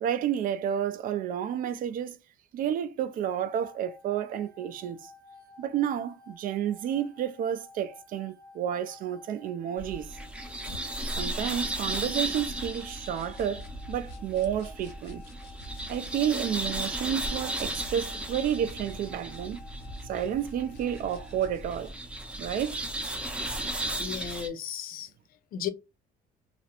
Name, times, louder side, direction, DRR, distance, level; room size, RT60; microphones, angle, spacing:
voice 1, 0.0-2.2 2.5-5.1 5.6-10.1 11.2-15.2 15.9-19.6 20.1-21.9 22.4-22.9, right 9 dB, 55° right, 0.4 m, -31 dB
sound 1, 3.6-21.6, left 3 dB, 85° right, 0.9 m, -53 dB
sound 2, 9.8-24.5, right 1 dB, 5° right, 0.5 m, -35 dB
sound 3, 10.2-21.9, equal, 85° left, 0.8 m, -47 dB
voice 2, 24.0-25.1 25.5-25.7, left 8 dB, 60° left, 0.5 m, -34 dB
2.4 x 2.0 x 2.8 m
cardioid pair, 110°, 17 cm